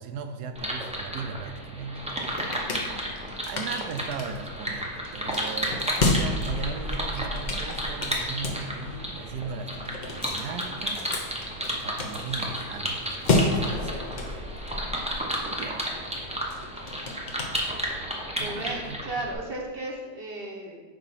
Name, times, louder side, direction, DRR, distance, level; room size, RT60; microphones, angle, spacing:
voice 1, 0.0-11.0 11.7-13.9 14.2-14.4 15.4-15.9 18.4-19.0, right 5 dB, 75° right, 7 dB, 1.1 m, -38 dB
sound 1, 0.5-19.3, equal, 10° right, 0.4 m, -33 dB
sound 2, 1.9-18.2, left 2 dB, 40° left, 0.6 m, -32 dB
voice 2, 14.4-14.7 18.4-20.8, right 2 dB, 40° right, -1 dB, 0.9 m, -35 dB
9.0 x 3.0 x 5.7 m, 1.3 s
omnidirectional pair, 1.8 m